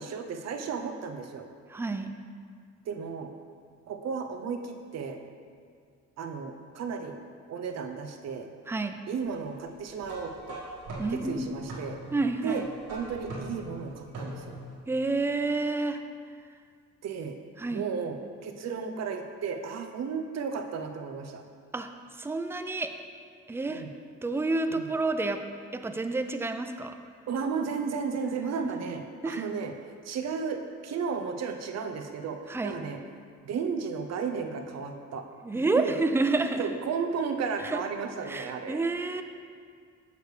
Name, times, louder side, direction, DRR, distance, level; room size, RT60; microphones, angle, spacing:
voice 1, 0.0-1.5 2.9-3.3 3.9-5.2 6.2-7.2 7.5-8.5 9.1-10.6 11.1-12.0 12.4-12.6 12.9-14.6 17.0-17.4 17.7-21.4 23.7-23.9 24.7-24.8 27.3-29.0 29.3-29.7 30.0-32.4 32.6-33.0 33.4-35.2 35.5-35.9 36.5-38.9, right 5 dB, 60° right, 5 dB, 0.7 m, -34 dB
voice 2, 1.7-2.1 8.7-9.0 11.0-11.5 12.1-12.7 14.9-16.0 17.6-17.9 21.7-21.9 22.2-22.9 23.5-23.8 24.2-25.4 25.7-26.9 29.2-29.5 32.5-32.7 35.4-36.7 37.6-37.8 38.2-39.2, right 3 dB, 10° right, 7 dB, 0.3 m, -29 dB
sound 1, 10.0-14.8, right 1 dB, 80° right, 1.6 m, -41 dB
6.6 x 6.6 x 3.3 m, 2.1 s
cardioid pair, 90°, 30 cm